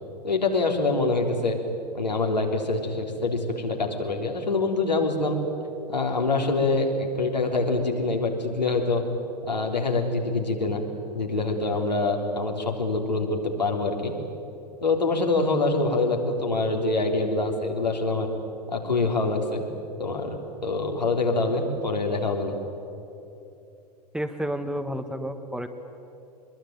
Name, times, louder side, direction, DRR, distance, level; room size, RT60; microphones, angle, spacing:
voice 1, 0.2-1.6 1.9-5.4 5.9-9.0 9.4-10.8 11.1-14.1 14.8-18.3 18.7-19.6 20.0-22.5, left 3 dB, 85° left, 1 dB, 3.5 m, -25 dB
voice 2, 24.1-25.7, equal, 5° right, 8 dB, 1.4 m, -30 dB
24.5 x 22.0 x 9.3 m, 2.8 s
figure-of-eight pair, 95°, 21 cm